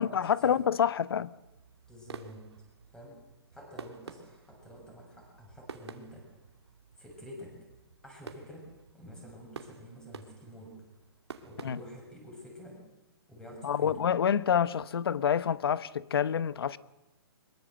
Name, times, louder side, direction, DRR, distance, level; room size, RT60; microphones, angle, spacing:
voice 1, 0.0-1.3 11.6-11.8 13.6-16.8, left 8 dB, 65° left, 1.1 m, -27 dB
sound 1, 1.3-12.8, right 6 dB, 85° right, 2.6 m, -51 dB
voice 2, 1.9-2.5 2.9-3.2 3.5-6.3 7.0-7.6 8.0-10.8 11.4-12.8 13.3-14.0, equal, 5° left, 6.5 m, -48 dB
23.0 x 22.0 x 7.8 m
hypercardioid pair, 160°, 14 cm